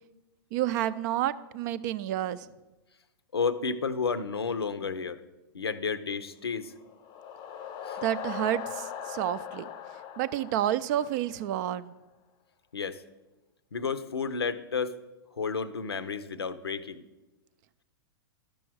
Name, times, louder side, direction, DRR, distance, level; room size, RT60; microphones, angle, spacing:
voice 1, 0.5-2.5 8.0-9.7 10.2-11.9, right 12 dB, 50° right, 16 dB, 0.4 m, -29 dB
voice 2, 3.3-5.2 5.5-6.7 7.9-8.0 12.7-13.0 13.7-14.9 15.4-17.0, left 5 dB, 90° left, 12 dB, 0.6 m, -31 dB
sound 1, 6.7-11.6, left 9 dB, 35° left, 0.5 m, -40 dB
12.0 x 6.2 x 4.7 m, 1.1 s
hypercardioid pair, 105°, 13 cm